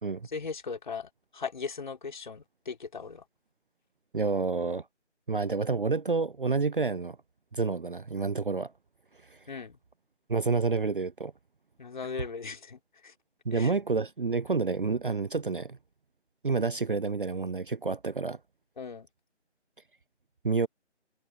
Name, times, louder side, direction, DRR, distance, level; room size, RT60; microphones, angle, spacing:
voice 1, 0.2-3.2 9.5-9.8 11.8-13.1 13.5-13.7 18.8-19.1, left 5 dB, 40° left, 3.8 m, -38 dB
voice 2, 4.1-4.8 5.3-7.2 7.5-8.7 9.3-9.4 10.3-11.3 13.5-15.8 16.4-18.4 20.4-20.7, right 4 dB, 50° right, 0.5 m, -29 dB
figure-of-eight pair, 165°, 35 cm